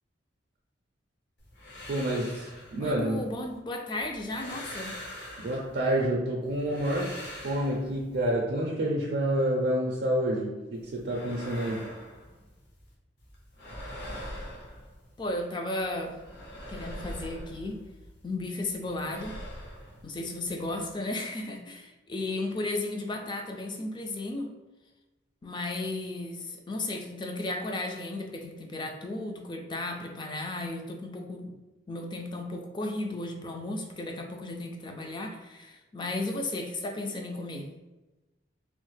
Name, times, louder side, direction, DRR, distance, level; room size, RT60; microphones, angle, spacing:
sound 1, 1.4-3.6 4.0-6.0 6.4-8.3 10.7-12.9 13.2-15.4 15.8-18.3 18.6-21.0, equal, 65° left, 0.8 m, -44 dB
voice 1, 1.9-3.3 5.4-7.1 7.4-11.9, right 1 dB, 60° right, -2 dB, 0.4 m, -28 dB
voice 2, 2.8-5.0 15.2-16.2 16.7-17.8 18.2-19.4 20.0-24.5 25.4-31.5 31.9-37.7, left 2 dB, 25° left, 3 dB, 0.3 m, -34 dB
3.1 x 2.0 x 3.2 m, 1.1 s
head